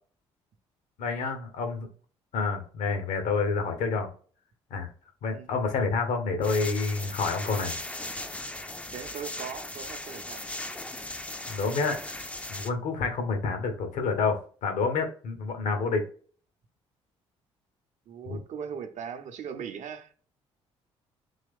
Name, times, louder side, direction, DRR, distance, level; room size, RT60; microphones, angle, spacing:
voice 1, 1.0-1.9 2.3-4.1 4.7-4.9 5.2-7.8 11.5-12.2 12.5-16.1 18.3-18.4, left 4 dB, 60° left, 1.1 m, -28 dB
sound 1, 6.4-12.7, left 1 dB, 10° left, 0.5 m, -38 dB
voice 2, 8.9-10.5 18.1-20.1, right 7 dB, 55° right, 0.7 m, -39 dB
3.8 x 3.0 x 3.5 m
figure-of-eight pair, 50°, 15 cm